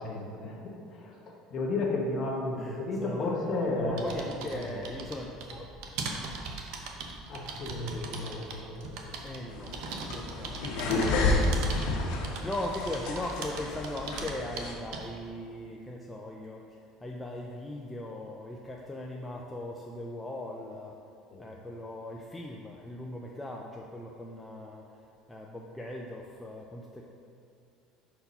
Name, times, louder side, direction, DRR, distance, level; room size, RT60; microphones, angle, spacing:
voice 1, 0.0-4.2 4.6-4.9 7.3-9.1 21.3-21.5, left 2 dB, 30° left, -1 dB, 1.0 m, -33 dB
voice 2, 2.6-5.7 9.2-9.8 10.1-10.6 12.4-21.0 21.4-25.0 25.3-27.1, left 1 dB, 5° left, -2 dB, 0.3 m, -39 dB
sound 1, 3.6-15.2, right 4 dB, 60° right, 0.7 m, -41 dB
sound 2, 9.5-14.7, left 2 dB, 70° left, 1.2 m, -30 dB
5.3 x 4.6 x 5.5 m, 2.5 s
cardioid pair, 175°, 0 cm